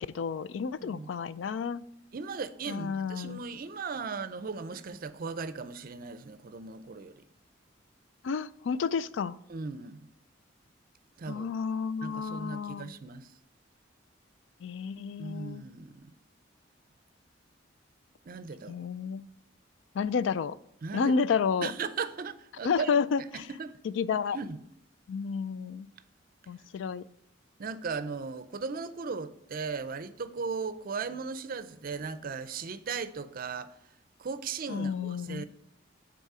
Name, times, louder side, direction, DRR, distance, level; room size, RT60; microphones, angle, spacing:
voice 1, 0.1-1.8 2.7-3.4 8.2-9.3 11.3-12.9 14.6-15.7 18.7-19.2 20.0-20.6 20.9-21.7 22.6-23.2 23.8-24.4 25.1-25.9 26.5-27.0 34.7-35.4, left 6 dB, 75° left, 0.3 m, -30 dB
voice 2, 0.8-1.1 2.1-7.2 9.5-10.1 11.2-11.5 12.0-13.3 15.2-16.1 18.3-18.8 20.8-21.2 21.6-23.1 23.3-23.7 24.3-24.6 27.6-33.8 34.2-35.4, right 5 dB, 50° right, 0.5 m, -37 dB
8.1 x 4.1 x 4.8 m
head